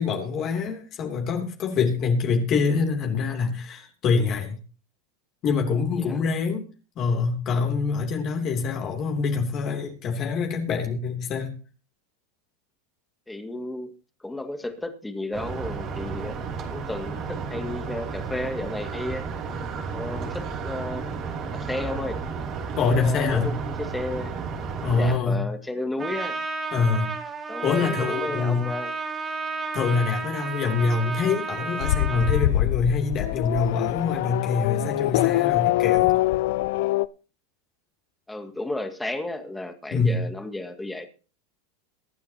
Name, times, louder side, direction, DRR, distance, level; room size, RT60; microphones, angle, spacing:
voice 1, 0.0-4.6 5.4-6.7 7.0-11.5 22.8-23.6 24.8-25.5 26.7-27.1 27.6-28.7 29.7-36.1 39.9-40.3, left 5 dB, 40° left, 3.0 m, -25 dB
voice 2, 13.3-13.9 14.2-16.4 16.7-19.2 19.9-21.1 21.5-22.2 22.8-24.3 24.9-26.4 27.5-28.9 38.3-41.1, left 2 dB, 5° left, 2.0 m, -33 dB
sound 1, 15.3-25.2, right 5 dB, 40° right, 3.0 m, -33 dB
Trumpet, 26.0-32.5, right 4 dB, 25° right, 2.7 m, -32 dB
Race car auto racing / Accelerating revving vroom, 31.8-37.1, left 16 dB, 70° left, 0.5 m, -23 dB
23.0 x 9.5 x 2.9 m
hypercardioid pair, 110°, 0 cm